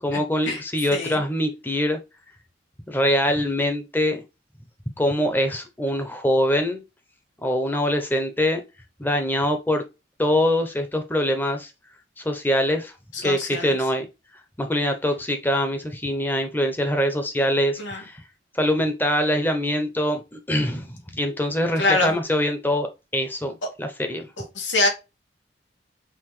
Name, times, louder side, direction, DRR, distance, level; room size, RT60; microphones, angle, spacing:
voice 1, 0.0-2.0 2.9-4.2 5.0-6.8 7.4-8.6 9.0-9.8 10.2-11.7 12.2-12.9 13.2-14.1 14.6-18.2 18.5-22.9 23.1-23.5 23.8-24.3, equal, 10° left, 0.7 m, -23 dB
voice 2, 13.1-13.7 17.8-18.0 21.8-22.2 24.4-24.9, left 2 dB, 90° left, 1.4 m, -24 dB
5.7 x 2.6 x 3.1 m
head